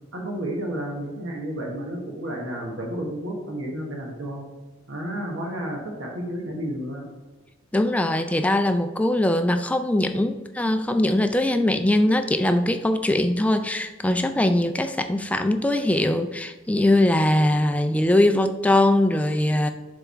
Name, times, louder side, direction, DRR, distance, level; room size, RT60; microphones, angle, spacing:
voice 1, 0.1-4.4 4.9-7.0, right 1 dB, 75° right, -1 dB, 1.4 m, -31 dB
voice 2, 7.7-19.7, left 1 dB, 5° left, 8 dB, 0.3 m, -21 dB
7.0 x 3.5 x 4.3 m, 1.2 s
head